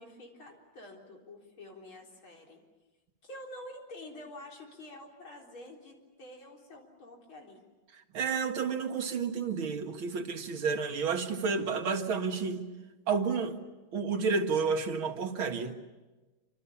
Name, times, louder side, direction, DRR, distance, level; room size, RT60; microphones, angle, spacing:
voice 1, 0.0-2.6 3.2-7.6, left 1 dB, 85° left, 0 dB, 4.9 m, -48 dB
voice 2, 8.1-12.7 13.1-13.6 13.9-15.8, right 5 dB, 85° right, 5 dB, 2.6 m, -30 dB
27.5 x 26.0 x 7.2 m, 1.2 s
omnidirectional pair, 2.2 m